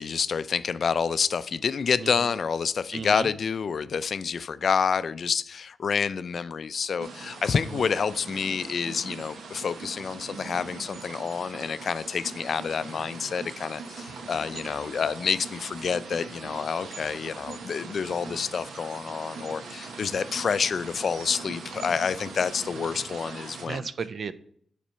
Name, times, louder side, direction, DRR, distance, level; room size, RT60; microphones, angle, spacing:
voice 1, 0.0-23.9, left 6 dB, 65° left, 0.3 m, -28 dB
voice 2, 2.9-3.3 7.6-7.9 23.5-24.3, right 5 dB, 65° right, 0.4 m, -35 dB
sound 1, 7.0-23.7, right 4 dB, 85° right, 0.9 m, -41 dB
7.3 x 4.1 x 5.5 m
cardioid pair, 55°, 0 cm